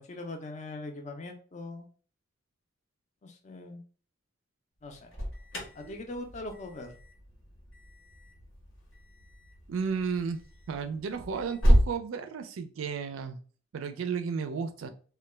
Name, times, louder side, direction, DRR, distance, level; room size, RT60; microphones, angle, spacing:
voice 1, 0.0-1.9 3.2-3.8 4.8-5.1 5.7-7.0, left 2 dB, 35° left, 0.4 m, -41 dB
Alarm, 4.8-11.9, equal, 80° left, 0.9 m, -31 dB
voice 2, 9.7-10.4 10.7-13.4 13.7-14.9, right 5 dB, 80° right, 0.4 m, -33 dB
2.2 x 2.1 x 3.1 m
head